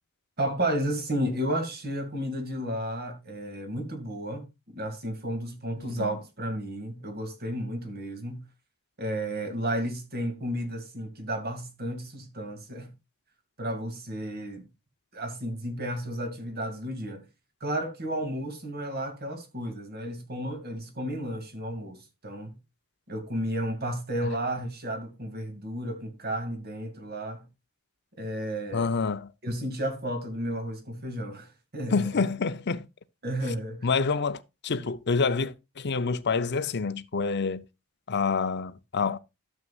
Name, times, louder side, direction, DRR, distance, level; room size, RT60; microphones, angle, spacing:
voice 1, 0.4-8.4 9.0-12.9 13.6-14.7 15.1-17.2 17.6-22.6 23.1-27.4 28.2-28.9 29.4-32.2 33.2-33.9, right 1 dB, 45° right, 2.3 m, -32 dB
voice 2, 5.8-6.1 28.7-29.3 31.9-32.9 33.8-37.6 38.1-39.2, left 4 dB, 50° left, 0.7 m, -27 dB
12.5 x 7.5 x 2.4 m
head